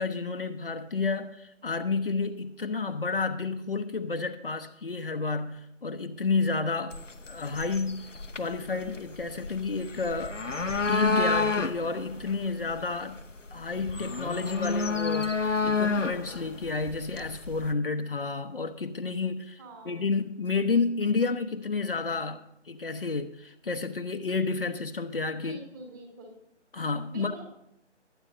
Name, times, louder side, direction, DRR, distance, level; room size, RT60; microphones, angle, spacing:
voice 1, 0.0-7.0 7.3-8.0 8.4-10.6 10.9-13.2 13.5-25.6 26.7-27.4, left 4 dB, 50° left, 0.9 m, -30 dB
sound 1, 6.9-17.7, left 4 dB, 85° left, 1.0 m, -31 dB
voice 2, 19.6-20.0 25.3-26.3 27.1-27.4, right 1 dB, 15° right, 1.7 m, -45 dB
21.5 x 9.9 x 2.6 m
figure-of-eight pair, 150°, 36 cm